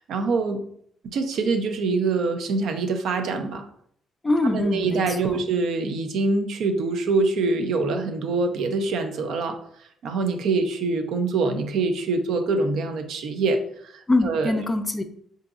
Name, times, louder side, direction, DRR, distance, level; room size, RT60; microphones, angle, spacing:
voice 1, 0.1-0.6 1.1-3.7 4.4-9.6 10.0-13.9 14.2-14.6, right 3 dB, 75° right, 6 dB, 0.4 m, -24 dB
voice 2, 4.2-5.4 14.1-15.0, left 2 dB, 20° left, 8 dB, 0.3 m, -24 dB
3.8 x 2.7 x 2.4 m, 0.67 s
cardioid pair, 90°, 0 cm